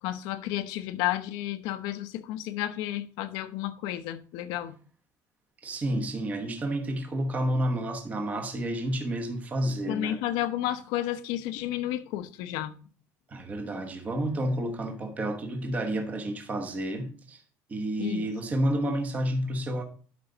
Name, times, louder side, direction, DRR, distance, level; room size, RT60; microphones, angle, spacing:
voice 1, 0.0-4.8 9.9-12.7 18.0-18.3, left 13 dB, 85° left, 0.9 m, -32 dB
voice 2, 5.6-10.2 13.3-17.4 17.7-19.8, right 1 dB, 20° right, 1.1 m, -30 dB
11.5 x 5.3 x 3.9 m
cardioid pair, 175°, 7 cm